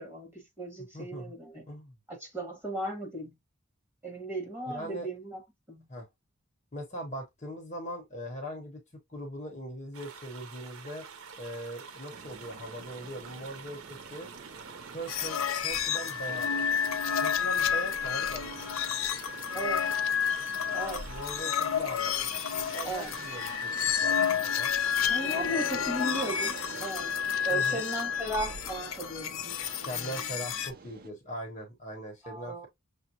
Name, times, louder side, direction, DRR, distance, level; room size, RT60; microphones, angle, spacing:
voice 1, 0.0-1.7 2.1-3.4 4.0-5.4 5.7-5.9 19.5-19.8 20.7-21.1 22.8-23.1 25.1-26.5 26.8-29.5 29.8-30.3 32.2-32.7, right 1 dB, 10° right, 1.4 m, -36 dB
voice 2, 0.9-1.3 1.7-1.9 4.7-5.1 5.9-6.1 6.7-8.8 9.1-11.1 11.4-14.3 14.9-16.6 17.2-18.7 21.1-23.7 24.0-24.7 27.5-27.9 29.9-32.7, right 1 dB, 35° left, 0.9 m, -41 dB
sound 1, 9.9-26.9, right 6 dB, 90° right, 0.6 m, -47 dB
sound 2, 12.1-31.1, right 4 dB, 45° right, 0.4 m, -47 dB
sound 3, 15.1-30.7, left 8 dB, 70° left, 0.5 m, -30 dB
6.0 x 2.1 x 2.7 m
head